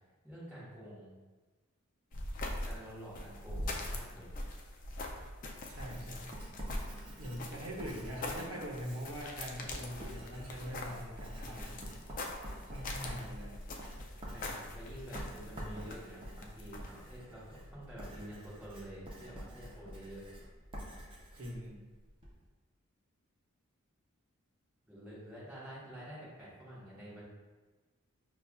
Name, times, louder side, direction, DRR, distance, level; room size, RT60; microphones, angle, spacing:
voice 1, 0.2-1.1 2.4-4.3 14.3-20.2 24.8-27.2, right 1 dB, 5° right, -10 dB, 1.1 m, -48 dB
sound 1, 2.1-17.2, left 1 dB, 35° left, 0.3 m, -43 dB
Writing, 5.7-22.4, equal, 25° right, 0.5 m, -47 dB
voice 2, 5.7-6.3 7.2-11.8 12.6-13.6 21.3-21.8, equal, 75° right, -3 dB, 0.8 m, -43 dB
5.5 x 2.3 x 2.2 m, 1.3 s
head